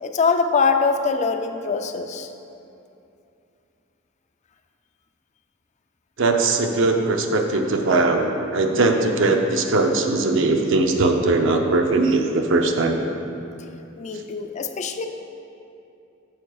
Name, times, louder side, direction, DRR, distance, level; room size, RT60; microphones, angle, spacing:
voice 1, 0.0-2.3 14.0-15.1, left 5 dB, 35° left, 6 dB, 0.4 m, -23 dB
voice 2, 6.2-13.0, right 3 dB, 65° right, 3 dB, 0.6 m, -20 dB
9.4 x 7.3 x 2.3 m, 2.7 s
head